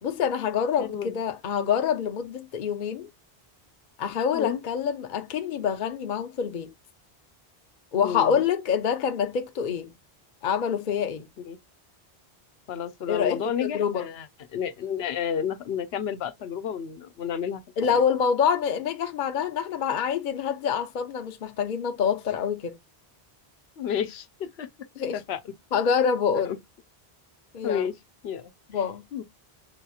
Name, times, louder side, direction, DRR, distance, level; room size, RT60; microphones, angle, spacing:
voice 1, 0.0-3.1 4.0-6.7 7.9-9.9 10.4-11.3 13.1-14.0 17.8-22.8 25.0-25.2 25.7-26.5 27.5-27.9 28.7-29.0, left 7 dB, 55° left, 0.7 m, -26 dB
voice 2, 0.8-1.2 4.3-4.6 8.0-8.4 11.4-11.6 12.7-17.6 17.9-18.0 23.8-24.7 25.1-25.4 26.3-26.6 27.6-27.9 28.2-28.5 29.1-29.2, left 8 dB, 85° left, 0.9 m, -31 dB
7.4 x 2.8 x 2.3 m
omnidirectional pair, 1.0 m